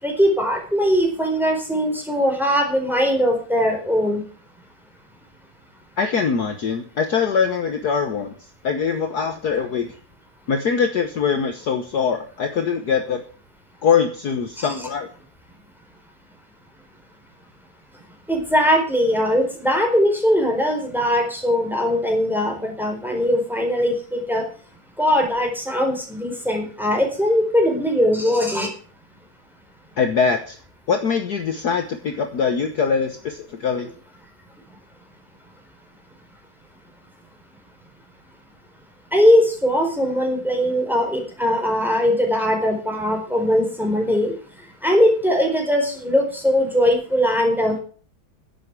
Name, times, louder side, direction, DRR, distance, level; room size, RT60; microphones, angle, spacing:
voice 1, 0.0-4.2 14.6-14.7 18.3-24.4 25.0-28.7 33.8-33.9 39.1-44.3 44.8-47.8, equal, ahead, 2 dB, 4.3 m, -20 dB
voice 2, 6.0-8.3 8.6-9.9 10.5-13.2 13.8-15.1 30.0-30.6 30.9-33.9, left 6 dB, 55° left, 6 dB, 1.6 m, -22 dB
11.5 x 8.1 x 8.2 m, 0.41 s
omnidirectional pair, 2.2 m